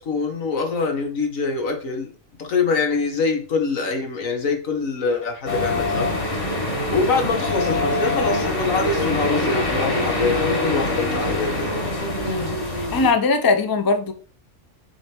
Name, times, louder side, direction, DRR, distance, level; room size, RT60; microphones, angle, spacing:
voice 1, 0.0-2.1 2.4-6.1 6.9-11.7, left 4 dB, 80° left, 1.8 m, -24 dB
sound 1, 5.5-13.1, left 2 dB, 45° left, 2.0 m, -24 dB
voice 2, 12.2-14.1, left 3 dB, 20° left, 0.6 m, -21 dB
7.4 x 3.4 x 4.5 m
omnidirectional pair, 1.4 m